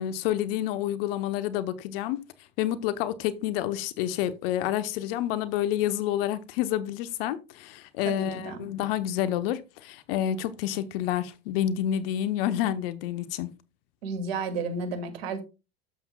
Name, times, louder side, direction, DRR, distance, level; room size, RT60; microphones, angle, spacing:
voice 1, 0.0-2.2 2.6-13.5, left 11 dB, 65° left, 1.0 m, -29 dB
voice 2, 8.0-8.7 14.0-15.4, right 4 dB, 70° right, 2.3 m, -32 dB
12.5 x 7.1 x 2.3 m
hypercardioid pair, 85°, 31 cm